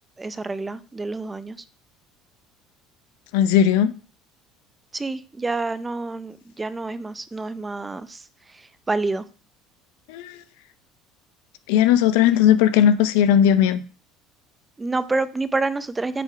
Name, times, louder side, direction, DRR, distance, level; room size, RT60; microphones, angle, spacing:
voice 1, 0.2-1.6 4.9-8.2 8.5-9.2 14.8-16.2, right 3 dB, 15° right, 0.5 m, -28 dB
voice 2, 3.3-3.9 10.1-10.4 11.7-13.8, left 9 dB, 90° left, 0.6 m, -17 dB
7.5 x 3.5 x 5.8 m
cardioid pair, 120°, 0 cm